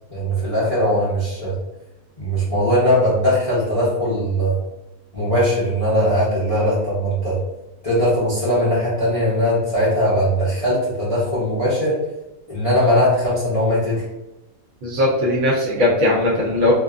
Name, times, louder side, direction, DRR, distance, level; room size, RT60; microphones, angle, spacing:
voice 1, 0.1-1.5 2.2-4.6 5.1-7.4 7.8-11.9 12.5-14.0, equal, 35° left, -10 dB, 0.6 m, -19 dB
voice 2, 14.8-16.7, left 1 dB, 65° right, -4 dB, 1.0 m, -18 dB
2.7 x 2.4 x 2.3 m, 0.96 s
omnidirectional pair, 1.5 m